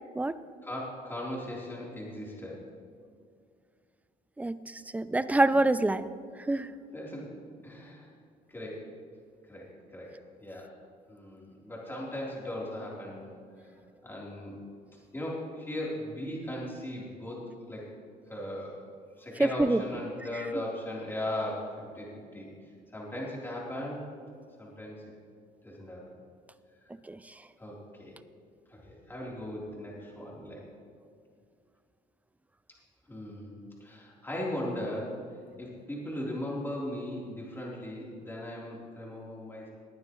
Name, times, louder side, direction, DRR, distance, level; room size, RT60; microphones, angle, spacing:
voice 1, 0.6-2.6 6.9-7.3 7.6-8.1 8.5-8.8 9.4-10.1 10.4-10.7 11.1-13.3 13.6-13.7 14.0-14.6 15.1-17.4 17.7-17.8 18.3-18.8 19.2-22.1 22.3-22.5 22.9-24.0 24.6-25.0 25.6-26.0 26.8-26.9 27.6-28.1 28.7-30.6 33.1-35.2 35.6-39.7, left 1 dB, 15° left, -5 dB, 3.6 m, -38 dB
voice 2, 4.4-6.1 6.4-6.7 19.4-19.8 20.3-20.5 27.0-27.3, right 2 dB, 10° right, 15 dB, 0.4 m, -26 dB
20.0 x 9.3 x 3.1 m, 2.2 s
cardioid pair, 110°, 17 cm